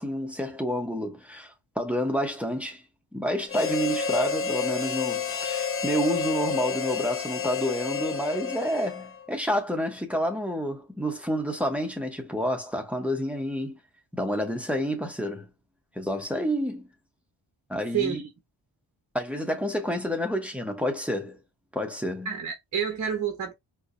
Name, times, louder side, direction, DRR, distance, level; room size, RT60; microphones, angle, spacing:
voice 1, 0.0-2.8 3.1-13.8 14.1-15.5 15.9-16.9 17.7-18.3 19.1-21.4 21.7-22.3, equal, 5° right, 0.8 m, -29 dB
Harmonica, 3.5-9.3, left 6 dB, 30° left, 0.4 m, -30 dB
voice 2, 22.3-23.5, right 8 dB, 40° right, 0.8 m, -28 dB
4.5 x 2.0 x 2.5 m
wide cardioid pair, 145°, 47 cm